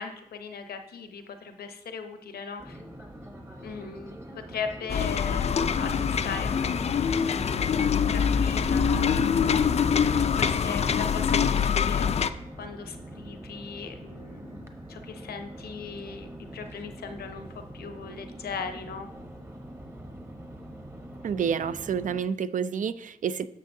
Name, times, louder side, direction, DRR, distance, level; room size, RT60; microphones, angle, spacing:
voice 1, 0.0-2.8 3.6-10.0 10.4-19.1, left 5 dB, 85° left, 7 dB, 0.8 m, -39 dB
sound 1, 2.6-22.2, right 1 dB, 15° right, 1.0 m, -44 dB
sound 2, 4.9-12.3, left 7 dB, 45° left, 0.4 m, -24 dB
voice 2, 21.2-23.5, right 7 dB, 55° right, 14 dB, 0.4 m, -29 dB
9.9 x 6.5 x 2.7 m, 0.80 s
wide cardioid pair, 100°, 16 cm